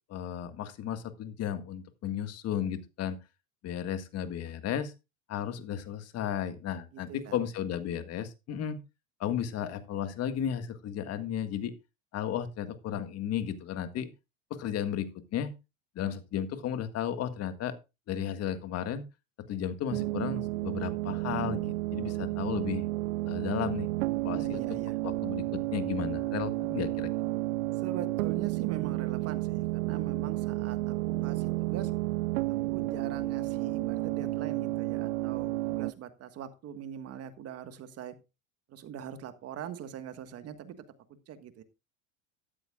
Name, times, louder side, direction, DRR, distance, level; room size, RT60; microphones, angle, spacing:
voice 1, 0.1-3.2 3.6-4.9 5.3-8.8 9.2-11.7 12.1-14.1 14.5-15.5 16.0-17.7 18.1-19.0 19.5-22.8 23.3-23.9 24.2-24.6 25.0-27.1, left 9 dB, 40° left, 10 dB, 1.7 m, -34 dB
sound 1, 19.9-35.9, right 19 dB, 90° right, 0.6 m, -31 dB
voice 2, 24.3-25.0 27.8-31.9 32.7-38.1 38.7-40.8 41.3-41.6, right 9 dB, 40° right, 11 dB, 1.5 m, -42 dB
13.5 x 12.5 x 2.4 m, 0.26 s
supercardioid pair, 115°, 39 cm